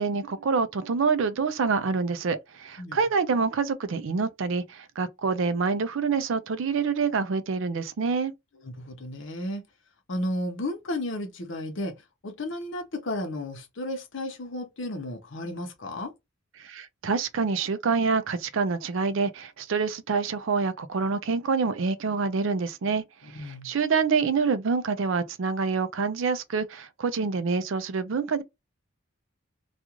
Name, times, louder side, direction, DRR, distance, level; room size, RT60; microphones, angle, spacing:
voice 1, 0.0-8.3 16.6-28.4, right 5 dB, 65° right, 0.4 m, -26 dB
voice 2, 8.6-9.6 10.1-12.0 12.2-16.1 23.2-23.7, left 1 dB, 60° left, 0.8 m, -33 dB
2.4 x 2.4 x 2.9 m
head